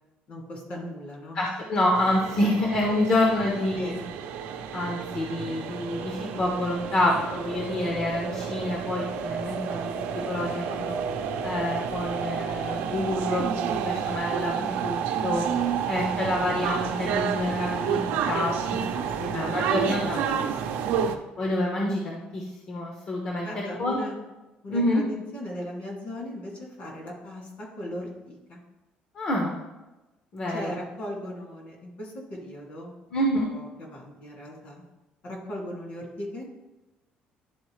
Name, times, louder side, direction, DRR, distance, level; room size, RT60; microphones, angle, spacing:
voice 1, 0.3-1.4 2.4-2.5 3.4-4.1 16.1-16.2 19.2-21.2 23.4-24.2 24.6-28.6 30.5-32.9 33.4-34.8 35.2-36.4, left 1 dB, 55° left, -2 dB, 2.4 m, -38 dB
voice 2, 1.3-4.0 4.7-11.0 11.4-15.4 15.9-20.2 21.4-23.5 23.8-24.0 24.7-25.0 29.1-29.6 30.3-30.7 33.1-33.5, left 1 dB, 35° left, -1 dB, 0.9 m, -27 dB
sound 1, 1.9-21.1, right 7 dB, 85° right, 0.6 m, -30 dB
10.5 x 4.0 x 3.2 m, 1.1 s
cardioid pair, 165°, 3 cm